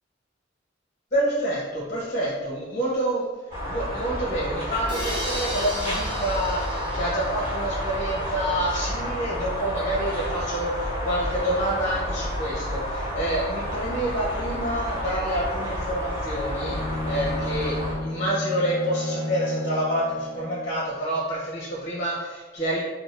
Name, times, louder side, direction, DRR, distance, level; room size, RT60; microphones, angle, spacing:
voice 1, 1.1-3.3 3.7-22.8, right 1 dB, 35° left, -6 dB, 0.7 m, -28 dB
sound 1, 3.5-17.9, equal, 40° right, 1.3 m, -30 dB
sound 2, 4.9-8.6, equal, 25° right, 0.6 m, -36 dB
Bowed string instrument, 16.5-20.8, left 2 dB, 85° left, 0.4 m, -32 dB
2.6 x 2.3 x 3.2 m, 1.3 s
head